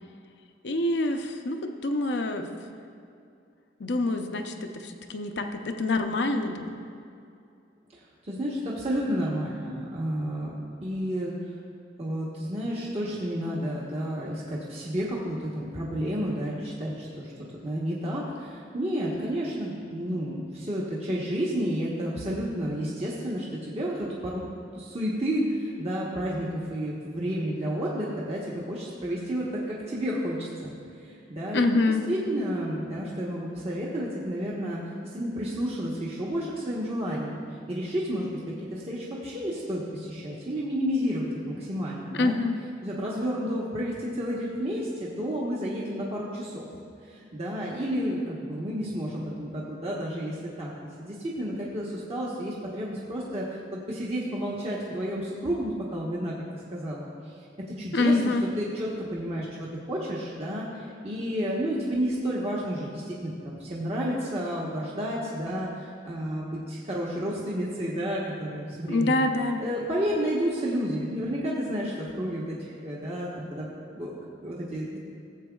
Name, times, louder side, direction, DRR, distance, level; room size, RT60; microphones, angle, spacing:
voice 1, 0.6-2.5 3.8-6.8 31.5-32.0 42.1-42.6 57.9-58.4 68.9-69.6, left 2 dB, 65° left, 6 dB, 0.6 m, -26 dB
voice 2, 8.2-11.3 12.0-17.3 17.6-24.4 24.7-30.7 31.0-31.8 32.1-34.8 35.1-37.4 37.7-38.4 38.7-42.4 42.8-46.7 47.1-56.3 56.7-57.1 57.8-69.2 69.6-73.7 73.9-75.0, equal, 35° right, -6 dB, 1.0 m, -31 dB
16.5 x 7.8 x 2.3 m, 2.5 s
head